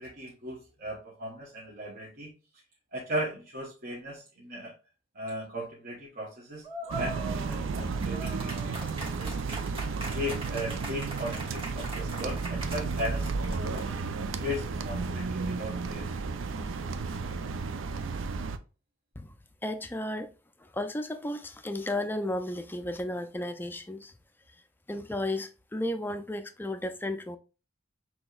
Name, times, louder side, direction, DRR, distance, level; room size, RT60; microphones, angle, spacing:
voice 1, 0.0-2.3 2.9-4.7 5.1-6.6 6.9-8.7 9.2-9.6 10.1-13.3 13.7-13.9 14.4-16.1, equal, 50° right, 1.0 m, -37 dB
sound 1, 6.6-14.1, right 2 dB, 30° right, 1.2 m, -41 dB
sound 2, 6.9-18.6, right 4 dB, 90° right, 0.4 m, -33 dB
voice 2, 19.6-20.3 20.6-24.1 24.9-27.4, left 1 dB, 10° left, 0.4 m, -33 dB
6.0 x 2.9 x 2.4 m
head